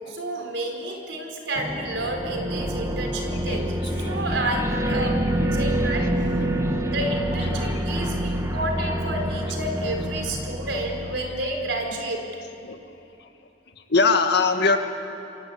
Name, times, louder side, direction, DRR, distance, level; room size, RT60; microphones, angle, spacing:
voice 1, 0.1-5.2 5.5-6.1 6.8-12.3, right 1 dB, 75° right, 3 dB, 4.7 m, -30 dB
sound 1, 1.5-11.7, right 1 dB, 15° right, 1.6 m, -27 dB
voice 2, 3.2-4.2 5.0-5.1 5.5-5.6 6.4-6.6 7.5-8.2 11.2-11.3 12.6-12.8 13.2-13.3 13.9-14.8, left 4 dB, 65° left, 6 dB, 1.9 m, -24 dB
27.5 x 22.5 x 8.7 m, 2.9 s
head